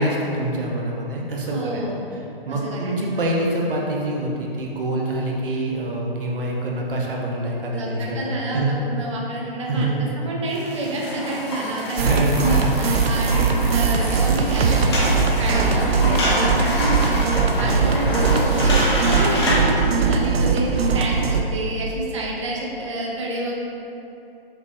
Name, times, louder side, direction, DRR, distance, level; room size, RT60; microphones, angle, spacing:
voice 1, 0.0-1.8 2.1-2.2 2.4-8.8 9.7-10.1 12.0-12.8 17.6-17.9, right 1 dB, 60° right, -2 dB, 0.8 m, -25 dB
voice 2, 1.5-2.0 2.5-3.0 7.7-17.2 17.6-23.6, right 1 dB, 30° right, -3 dB, 0.5 m, -28 dB
sound 1, 10.5-19.6, left 1 dB, 25° left, 0.5 m, -27 dB
sound 2, 12.0-21.4, right 5 dB, 80° right, 0.4 m, -20 dB
5.2 x 2.8 x 2.5 m, 2.8 s
hypercardioid pair, 150°, 30 cm